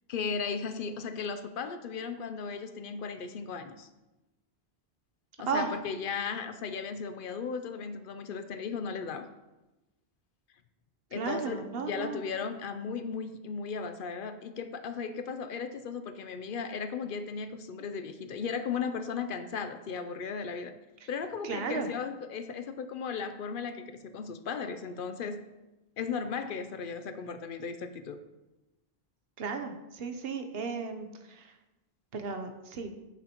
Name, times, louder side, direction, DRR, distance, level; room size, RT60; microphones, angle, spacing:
voice 1, 0.1-3.9 5.4-9.3 11.1-11.6 11.9-20.7 21.1-25.4 26.0-28.2, left 5 dB, 65° left, 9 dB, 0.7 m, -36 dB
voice 2, 11.1-12.2 21.0-21.1 21.4-21.9 29.4-31.5 32.1-32.9, right 5 dB, 75° right, 6 dB, 1.0 m, -34 dB
10.0 x 6.1 x 2.9 m, 1.0 s
omnidirectional pair, 1.0 m